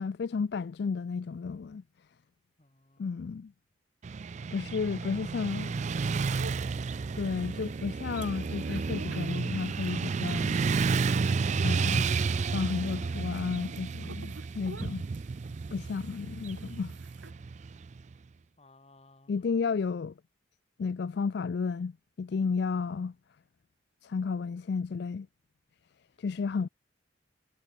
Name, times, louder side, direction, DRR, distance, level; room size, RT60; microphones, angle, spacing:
voice 1, 0.0-1.8 3.0-3.5 4.5-5.8 7.1-10.6 11.6-12.1 12.5-15.1 15.7-17.0 19.3-20.1 20.8-23.1 24.0-25.3 26.2-26.7, left 5 dB, 55° left, 0.4 m, -32 dB
voice 2, 2.6-3.1 4.9-5.7 18.6-19.3 26.2-26.3 26.6-26.7, left 2 dB, 30° left, 2.5 m, -60 dB
Motorcycle / Traffic noise roadway noise, 4.0-18.1, right 4 dB, 35° right, 0.3 m, -31 dB
sound 1, 5.7-17.3, right 3 dB, 65° right, 2.5 m, -50 dB
head